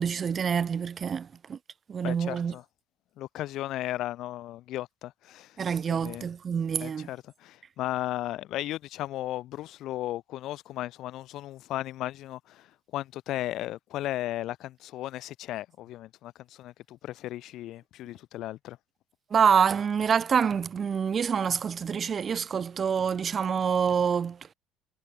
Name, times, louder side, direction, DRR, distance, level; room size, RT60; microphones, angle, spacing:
voice 1, 0.0-1.6 1.9-2.5 5.6-7.1 19.3-24.4, right 7 dB, 25° right, 0.4 m, -26 dB
voice 2, 2.0-2.6 3.2-5.6 5.9-6.3 6.8-12.7 12.9-16.3 16.6-18.8, left 14 dB, 50° left, 0.3 m, -35 dB
cardioid pair, 165°, 0 cm